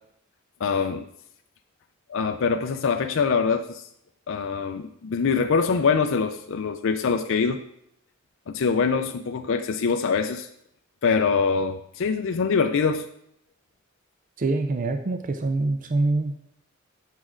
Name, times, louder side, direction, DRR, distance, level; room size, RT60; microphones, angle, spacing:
voice 1, 0.6-1.0 2.1-3.8 4.3-7.6 8.5-10.5 11.0-13.1, left 5 dB, 65° left, 7 dB, 0.4 m, -24 dB
voice 2, 14.4-16.4, right 2 dB, 40° right, 7 dB, 0.5 m, -25 dB
8.3 x 6.1 x 3.7 m, 0.75 s
head